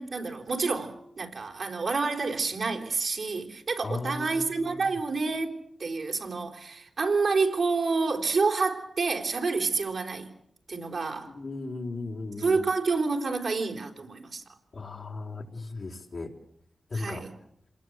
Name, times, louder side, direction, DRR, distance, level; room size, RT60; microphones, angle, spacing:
voice 1, 0.0-10.3 10.7-11.3 12.4-14.4 16.9-17.3, right 4 dB, 65° right, 3 dB, 4.3 m, -28 dB
voice 2, 3.8-4.9 11.3-12.6 14.7-16.3 16.9-17.3, left 3 dB, 60° left, -1 dB, 4.4 m, -36 dB
27.0 x 20.0 x 8.2 m, 0.72 s
cardioid pair, 50°, 0 cm